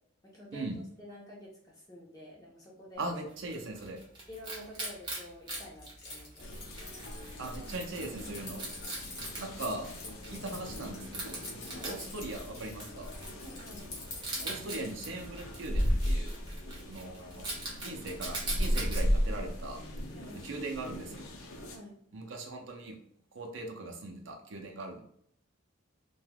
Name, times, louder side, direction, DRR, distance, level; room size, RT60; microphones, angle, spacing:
voice 1, 0.2-0.7 1.0-3.0 4.3-6.5 11.7-12.0 13.4-13.9 20.1-20.4 21.7-21.9, left 1 dB, 15° left, -4 dB, 0.7 m, -49 dB
Wild animals, 3.0-19.0, right 2 dB, 20° right, 0.7 m, -43 dB
voice 2, 3.0-4.0 7.4-8.6 9.4-9.9 10.3-11.4 11.8-13.1 14.4-16.4 16.9-17.5 17.8-19.8 20.3-21.3 22.1-23.0 23.3-25.0, right 2 dB, 65° right, 2 dB, 0.5 m, -39 dB
Keys jangling, 5.5-15.3, left 2 dB, 50° left, 1.0 m, -47 dB
sound 1, 6.4-21.8, equal, 80° left, 0.5 m, -36 dB
3.2 x 2.2 x 2.3 m, 0.68 s
head